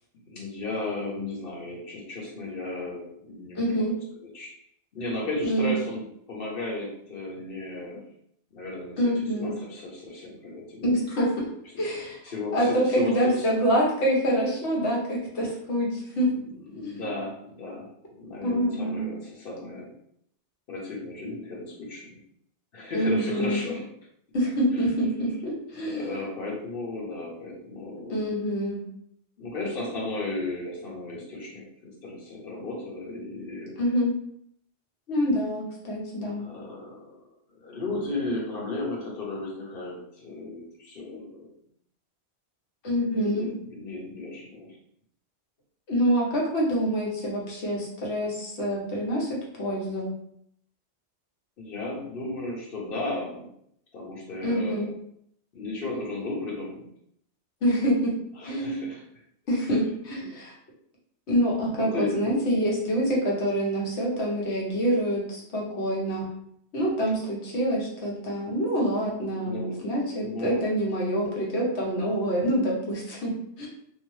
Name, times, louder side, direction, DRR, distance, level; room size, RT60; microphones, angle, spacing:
voice 1, 0.2-3.8 4.2-4.5 4.9-8.0 8.5-10.9 11.7-11.8 12.2-13.5 16.3-17.9 18.1-19.9 20.7-22.2 22.7-23.9 24.7-24.9 25.8-28.4 29.4-33.8 36.4-37.2 37.6-41.5 43.1-44.8 51.6-53.5 53.9-54.9 55.5-56.9 58.4-59.0 60.2-60.3 61.8-62.3 69.3-70.7, left 2 dB, 60° left, -3 dB, 1.0 m, -35 dB
voice 2, 3.6-4.0 5.4-5.7 9.0-9.5 10.8-11.5 11.8-12.2 12.5-16.3 16.7-17.1 18.4-19.1 22.9-23.6 24.3-26.1 28.1-28.8 33.8-34.1 35.1-36.4 42.8-43.5 45.9-49.3 49.6-50.1 54.4-54.9 57.6-58.1 58.4-58.8 59.5-60.5 61.3-66.3 66.7-73.7, equal, 85° left, -3 dB, 1.2 m, -26 dB
2.7 x 2.1 x 3.0 m, 0.70 s
omnidirectional pair, 1.1 m